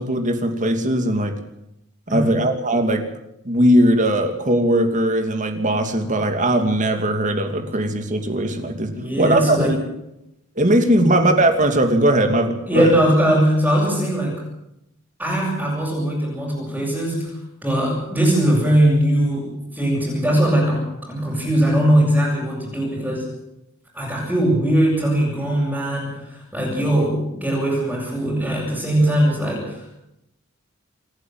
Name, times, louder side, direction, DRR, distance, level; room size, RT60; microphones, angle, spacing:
voice 1, 0.0-1.3 2.1-3.0 3.4-9.8 10.6-13.0, right 1 dB, 35° right, 6 dB, 2.9 m, -19 dB
voice 2, 8.9-9.8 11.0-11.2 12.7-14.4 15.2-23.2 23.9-29.9, right 1 dB, 5° right, -7 dB, 7.1 m, -20 dB
28.0 x 11.0 x 9.2 m, 0.84 s
head